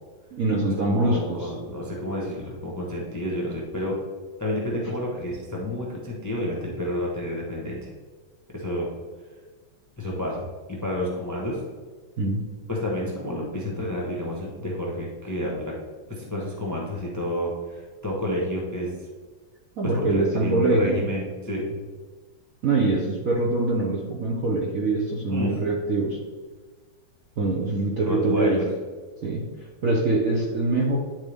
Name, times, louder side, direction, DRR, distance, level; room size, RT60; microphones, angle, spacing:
voice 1, 0.3-1.5 4.9-5.0 12.2-12.4 19.8-21.0 22.6-26.2 27.4-28.6 29.2-29.5 29.8-31.0, right 2 dB, 60° right, -2 dB, 0.9 m, -24 dB
voice 2, 0.9-3.9 4.4-7.9 8.5-8.9 10.0-11.6 12.7-15.7 16.2-18.9 19.8-21.8 25.3-25.5 28.0-28.7, left 1 dB, 15° left, -3 dB, 0.7 m, -30 dB
10.0 x 4.0 x 3.5 m, 1.4 s
omnidirectional pair, 2.2 m